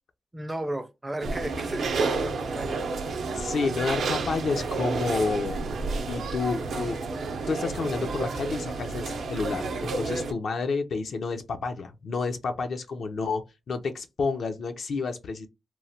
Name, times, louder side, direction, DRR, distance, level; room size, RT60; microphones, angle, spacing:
voice 1, 0.3-2.8, right 1 dB, 15° right, 0.4 m, -34 dB
sound 1, 1.2-10.3, right 4 dB, 80° right, 0.5 m, -30 dB
voice 2, 3.3-5.7 6.0-7.0 7.5-13.4 13.7-15.5, left 4 dB, 65° left, 0.4 m, -30 dB
3.0 x 2.1 x 2.6 m
wide cardioid pair, 105°, 0 cm